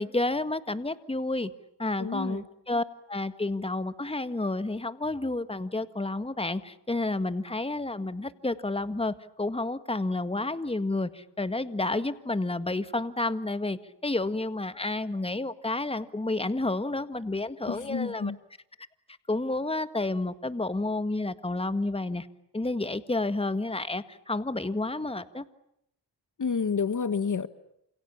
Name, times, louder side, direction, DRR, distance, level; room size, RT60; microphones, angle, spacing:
voice 1, 0.0-1.5 1.8-18.3 19.3-22.3 22.5-25.4, left 2 dB, 15° left, 12 dB, 1.8 m, -30 dB
voice 2, 2.0-2.4 17.7-18.4 26.4-27.5, left 5 dB, 45° left, 12 dB, 1.4 m, -29 dB
28.5 x 28.0 x 7.3 m, 0.75 s
cardioid pair, 75°, 42 cm